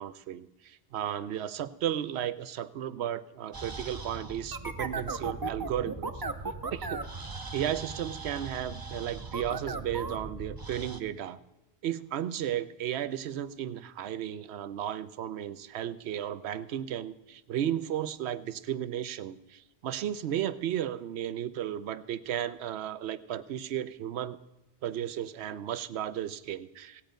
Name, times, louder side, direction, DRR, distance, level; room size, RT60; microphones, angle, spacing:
voice 1, 0.0-6.2 6.7-7.0 7.5-11.4 11.8-24.4 24.8-27.0, right 10 dB, 75° right, 15 dB, 0.9 m, -34 dB
sound 1, 3.5-11.0, right 3 dB, 25° right, 0.5 m, -38 dB
16.5 x 9.0 x 5.2 m, 1.0 s
omnidirectional pair, 1.1 m